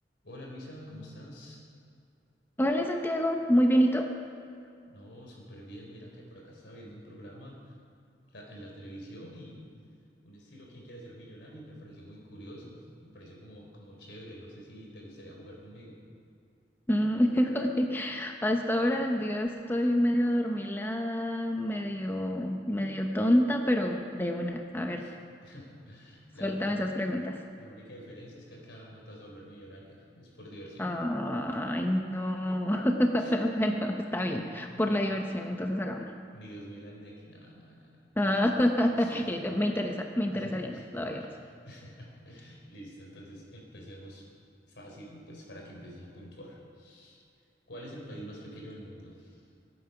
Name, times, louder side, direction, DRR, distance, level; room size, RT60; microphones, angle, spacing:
voice 1, 0.2-1.7 4.9-7.8 8.3-9.7 10.2-16.0 25.0-25.1 25.4-26.8 27.6-30.9 33.2-33.3 34.7-34.9 36.3-38.1 39.0-39.3 40.3-40.8 41.2-41.3 41.7-44.3 44.7-47.2 47.7-49.5, equal, 70° left, -1 dB, 4.0 m, -47 dB
voice 2, 2.6-4.1 16.9-25.0 26.4-27.4 30.8-36.1 38.2-41.2, equal, 10° left, 3 dB, 0.8 m, -28 dB
22.5 x 9.3 x 5.9 m, 2.5 s
head